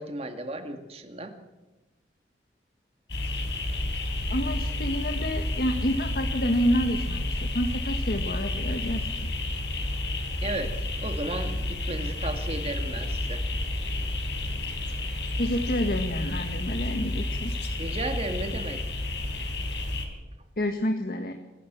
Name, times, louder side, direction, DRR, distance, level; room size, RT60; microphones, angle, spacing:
voice 1, 0.0-1.3 10.4-13.4 17.8-18.8, right 2 dB, 35° right, 7 dB, 2.1 m, -34 dB
sound 1, 3.1-20.1, left 1 dB, 80° left, 4.0 m, -30 dB
voice 2, 4.3-9.0 15.4-17.5 20.6-21.3, equal, 55° left, 5 dB, 1.5 m, -28 dB
27.0 x 13.0 x 7.5 m, 1.1 s
head